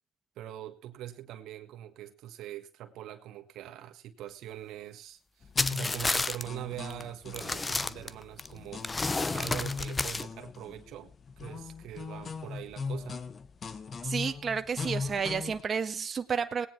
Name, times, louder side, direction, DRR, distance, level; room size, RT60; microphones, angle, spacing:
voice 1, 0.3-8.9 9.3-11.1 11.4-13.2, right 12 dB, 80° right, 1.5 m, -43 dB
sound 1, 5.4-15.6, left 5 dB, 45° left, 1.4 m, -39 dB
sound 2, 5.6-6.4 6.9-7.0 7.3-8.5 8.8-10.2, left 3 dB, 25° left, 0.9 m, -30 dB
voice 2, 14.0-16.7, right 6 dB, 40° right, 1.6 m, -31 dB
19.0 x 9.6 x 4.4 m
cardioid pair, 85°, 0 cm